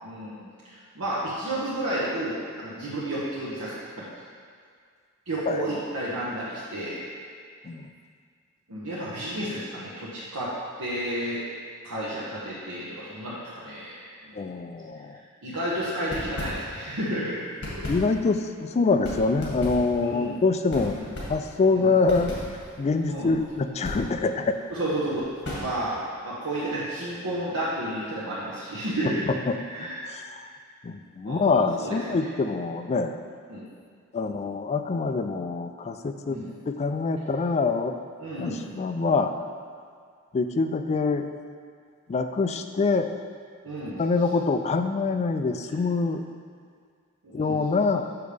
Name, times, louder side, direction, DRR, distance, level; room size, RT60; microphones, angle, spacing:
voice 1, 0.0-4.1 5.3-7.1 8.7-10.5 10.8-11.4 11.8-14.0 14.2-14.4 15.4-17.4 17.7-17.9 19.9-20.4 21.0-21.1 21.7-21.9 23.1-23.3 24.7-25.3 25.6-26.0 26.2-29.2 29.7-30.0 31.3-31.5 31.8-32.3 33.5-33.7 34.3-34.4 36.3-36.5 38.2-38.7 43.6-44.0 47.2-47.6, right 1 dB, 85° right, -9 dB, 1.1 m, -31 dB
voice 2, 14.3-15.2 17.9-21.0 21.3-22.4 22.8-24.6 29.3-30.2 30.8-33.2 34.1-36.4 36.7-38.0 38.4-39.3 40.3-41.3 42.1-43.2 44.0-46.2 47.3-48.1, left 4 dB, 30° left, 7 dB, 0.3 m, -25 dB
sound 1, 15.9-17.0 17.3-26.0, left 1 dB, 55° left, 1.8 m, -37 dB
6.8 x 6.3 x 3.4 m, 2.1 s
head